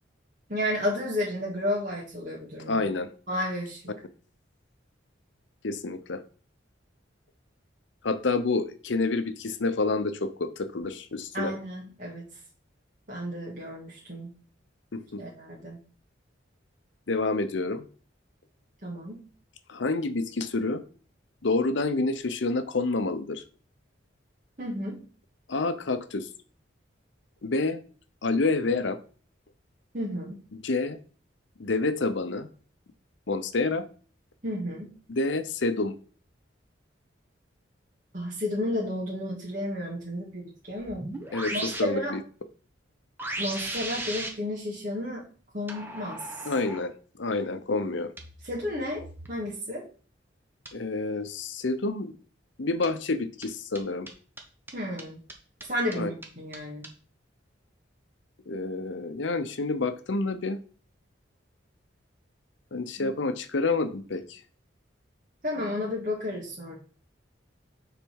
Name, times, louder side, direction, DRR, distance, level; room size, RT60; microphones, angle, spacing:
voice 1, 0.5-2.8 3.3-3.8 11.3-12.3 13.1-14.3 15.2-15.8 18.8-19.2 24.6-25.0 29.9-30.4 34.4-34.9 38.1-41.0 41.5-42.1 43.4-45.2 45.5-46.2 48.4-49.8 54.7-55.2 55.7-56.9 63.0-63.1 65.4-66.8, left 1 dB, 45° right, -5 dB, 1.9 m, -32 dB
voice 2, 2.7-3.1 5.6-6.2 8.0-11.5 14.9-15.2 17.1-17.9 19.7-20.8 21.4-23.4 25.5-26.3 27.4-27.8 28.2-29.0 30.5-31.0 31.6-32.5 33.3-33.8 35.1-35.9 41.3-42.2 46.4-46.9 47.2-48.1 50.7-52.2 52.6-54.1 55.9-56.1 58.5-60.6 62.7-64.4, left 3 dB, 70° left, 11 dB, 0.7 m, -28 dB
sound 1, 40.7-41.8 43.2-44.3 45.7-46.8 48.2-49.3 50.7-50.8 52.8-52.9 53.4-53.5 53.8-53.9 54.1-54.2 54.4-54.5 54.7-54.8 55.0-55.1 55.3-55.4 55.6-55.7 55.9-56.0 56.2-56.3 56.5-56.6 56.8-56.9, right 1 dB, 10° right, 1.1 m, -36 dB
8.8 x 4.1 x 4.7 m, 0.40 s
head